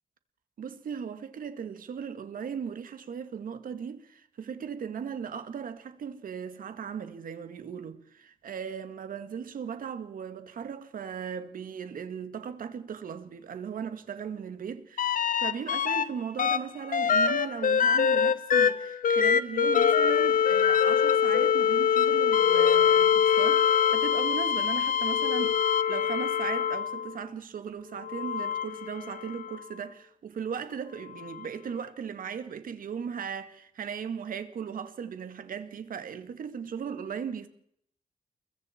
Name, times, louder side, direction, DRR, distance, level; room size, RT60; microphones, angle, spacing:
voice 1, 0.6-15.1 15.4-37.5, right 7 dB, 85° right, 2.1 m, -37 dB
sound 1, 15.0-16.1 16.4-27.2 28.0-29.6 31.3-31.4, left 7 dB, 80° left, 1.0 m, -24 dB
29.0 x 22.5 x 4.6 m
wide cardioid pair, 110°, 14 cm